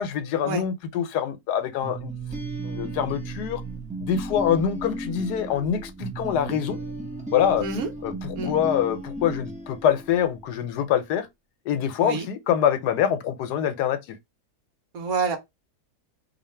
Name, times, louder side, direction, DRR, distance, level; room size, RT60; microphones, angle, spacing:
voice 1, 0.0-2.1 2.6-3.6 4.0-6.8 7.3-7.6 8.0-11.3 11.6-14.2, left 9 dB, 90° left, 1.2 m, -25 dB
sound 1, 1.8-10.5, right 2 dB, 10° right, 0.4 m, -35 dB
voice 2, 14.9-15.4, right 4 dB, 70° right, 1.2 m, -27 dB
2.8 x 2.5 x 4.2 m
omnidirectional pair, 1.7 m